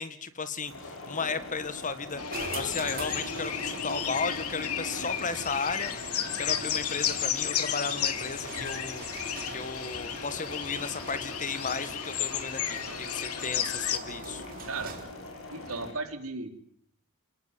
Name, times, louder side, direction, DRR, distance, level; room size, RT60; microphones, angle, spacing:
voice 1, 0.0-2.2 2.5-5.9 6.4-9.0 9.5-14.4, left 4 dB, 35° left, 12 dB, 1.7 m, -34 dB
sound 1, 0.6-15.9, left 2 dB, 60° left, 7.4 m, -43 dB
sound 2, 2.2-14.0, left 9 dB, 80° left, 2.5 m, -33 dB
sound 3, 2.3-15.2, right 3 dB, 40° right, 4.0 m, -44 dB
voice 2, 15.5-16.6, right 3 dB, 70° right, 7 dB, 3.8 m, -35 dB
29.0 x 19.5 x 9.8 m, 0.67 s
head